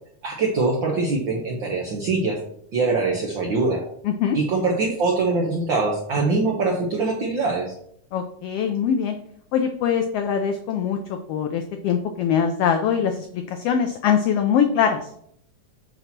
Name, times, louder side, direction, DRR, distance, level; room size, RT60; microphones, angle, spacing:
voice 1, 0.2-2.4 2.7-3.8 4.3-7.8, right 3 dB, 70° right, -1 dB, 1.1 m, -23 dB
voice 2, 4.0-4.4 8.1-9.1 9.5-15.0, left 7 dB, 90° left, 6 dB, 1.3 m, -22 dB
8.0 x 2.9 x 5.9 m, 0.69 s
omnidirectional pair, 3.3 m